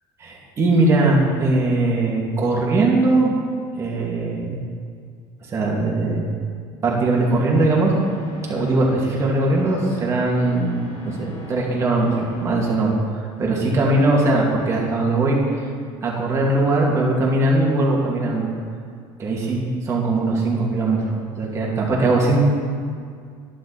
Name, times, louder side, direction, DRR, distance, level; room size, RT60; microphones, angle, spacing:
voice 1, 0.2-3.3 3.8-4.6 5.5-6.2 6.8-7.9 8.5-12.9 13.4-15.4 16.0-18.5 19.2-22.4, right 2 dB, 25° right, -4 dB, 2.5 m, -20 dB
sound 1, 7.0-12.9, equal, 85° left, 3.2 m, -41 dB
11.5 x 9.9 x 4.2 m, 2.1 s
cardioid pair, 145°, 11 cm